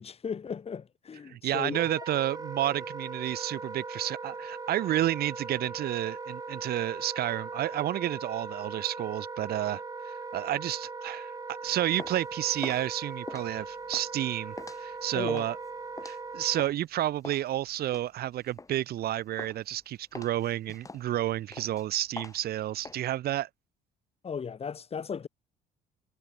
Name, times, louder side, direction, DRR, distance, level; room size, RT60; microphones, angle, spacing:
voice 1, 0.0-1.8 15.1-15.5 24.2-25.3, left 6 dB, 35° left, 6.1 m, -36 dB
voice 2, 1.3-11.3 11.6-15.6 16.0-23.5, right 13 dB, 65° right, 2.8 m, -31 dB
Wind instrument woodwind instrument, 1.7-16.6, right 4 dB, 20° right, 5.3 m, -40 dB
sound 1, 11.7-16.9 17.2-19.1 19.4-19.8 20.1-22.9, left 3 dB, 20° left, 7.5 m, -44 dB
cardioid pair, 110°, 17 cm